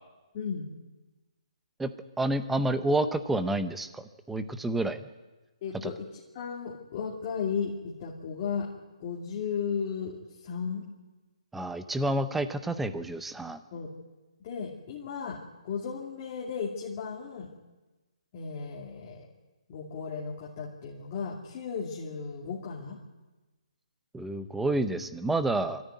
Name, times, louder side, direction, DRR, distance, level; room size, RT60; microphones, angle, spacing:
voice 1, 0.3-0.7 5.6-8.7 9.0-10.8 13.7-13.9 14.4-17.5 18.3-19.3 19.7-23.0, left 6 dB, 30° left, -4 dB, 2.6 m, -35 dB
voice 2, 2.2-5.1 5.8-5.9 11.5-13.6 24.1-25.8, right 2 dB, 5° right, 11 dB, 0.7 m, -29 dB
23.5 x 14.0 x 9.5 m, 1.2 s
hypercardioid pair, 165°, 3 cm